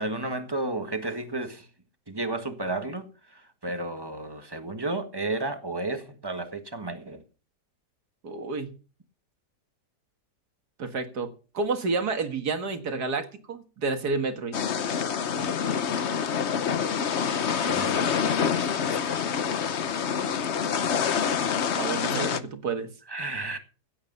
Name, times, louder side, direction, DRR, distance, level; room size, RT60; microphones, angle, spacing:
voice 1, 0.0-1.7 2.1-7.2 17.6-19.3 23.1-23.6, right 2 dB, 15° right, 1.5 m, -33 dB
voice 2, 8.2-8.7 10.8-14.6 21.8-22.9, right 4 dB, 65° right, 2.4 m, -30 dB
sound 1, 14.5-22.4, left 7 dB, 50° left, 1.0 m, -26 dB
16.5 x 8.6 x 5.5 m
omnidirectional pair, 1.8 m